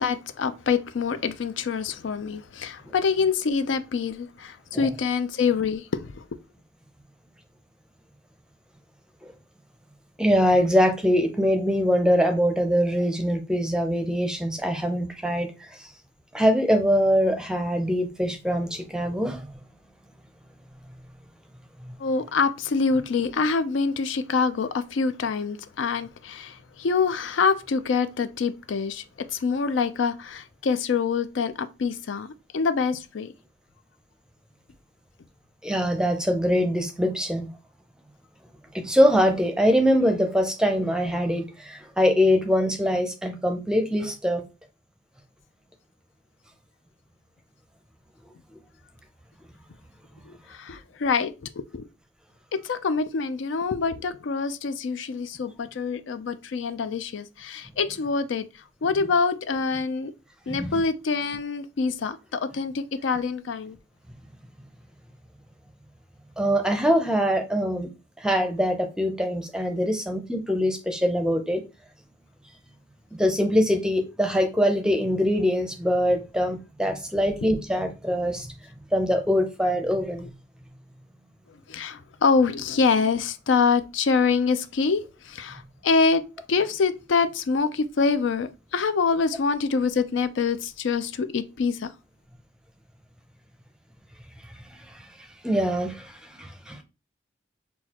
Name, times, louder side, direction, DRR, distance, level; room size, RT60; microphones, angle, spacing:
voice 1, 0.0-6.2 22.0-29.0 29.3-33.3 50.3-51.8 52.5-58.4 58.8-60.1 60.5-63.8 81.7-86.2 86.5-91.9, left 5 dB, 80° left, 0.4 m, -25 dB
voice 2, 10.2-15.9 16.3-19.5 21.8-22.0 35.6-37.5 38.7-44.4 60.5-60.8 66.4-67.9 68.2-71.6 73.2-78.5 78.9-80.3 94.7-96.8, equal, 5° right, 0.5 m, -23 dB
6.1 x 2.3 x 2.9 m
head